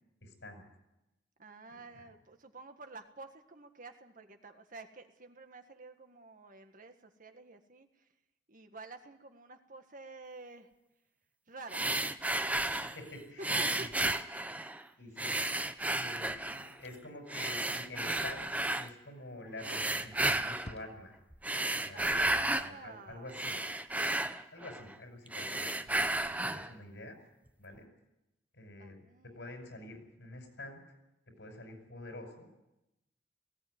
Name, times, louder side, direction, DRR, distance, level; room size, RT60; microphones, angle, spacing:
voice 1, 0.2-0.6 1.6-2.0 12.8-13.9 15.0-15.4 15.9-18.5 18.8-21.2 21.8-23.6 24.3-26.0 26.4-27.2 27.6-27.9 28.5-29.0 29.3-30.8 31.4-32.5, left 2 dB, 85° left, 4 dB, 5.8 m, -48 dB
voice 2, 1.4-8.1 8.5-10.7 11.5-11.9 13.4-14.6 21.9-23.4 28.8-29.5, right 3 dB, 50° right, 6 dB, 1.7 m, -50 dB
sound 1, 11.7-13.0 13.4-14.8 15.2-16.7 17.3-18.9 19.6-20.7 21.3-22.7 23.1-24.9 25.3-26.7, right 2 dB, 10° right, 0.7 m, -33 dB
sound 2, 16.8-17.3 19.3-19.8 20.1-20.2 20.6-21.4, left 1 dB, 35° left, 1.0 m, -53 dB
18.5 x 16.5 x 9.5 m, 0.94 s
head